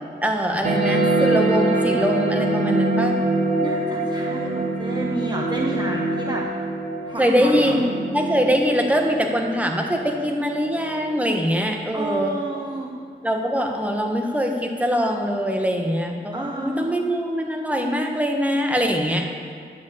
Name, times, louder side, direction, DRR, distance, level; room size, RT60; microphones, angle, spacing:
voice 1, 0.2-3.2 7.2-12.4 13.2-19.3, equal, 10° right, 2 dB, 1.3 m, -23 dB
sound 1, 0.6-11.6, right 2 dB, 50° right, 1.8 m, -25 dB
voice 2, 3.6-6.5 7.0-7.7 11.9-12.9 16.3-17.1, right 2 dB, 25° right, 0 dB, 0.9 m, -30 dB
9.5 x 7.5 x 8.5 m, 2.2 s
wide cardioid pair, 110°, 19 cm